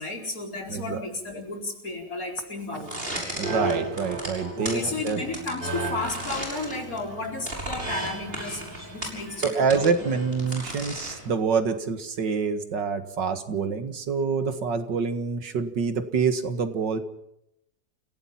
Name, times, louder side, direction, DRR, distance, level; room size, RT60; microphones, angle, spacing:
voice 1, 0.0-3.0 4.5-9.9, left 2 dB, 50° left, 1 dB, 5.1 m, -33 dB
voice 2, 0.7-1.0 3.4-5.2 9.4-17.0, right 5 dB, 85° right, 8 dB, 2.4 m, -26 dB
sound 1, 2.8-11.3, right 2 dB, 30° right, 6.1 m, -34 dB
29.0 x 17.0 x 5.9 m, 0.79 s
omnidirectional pair, 1.9 m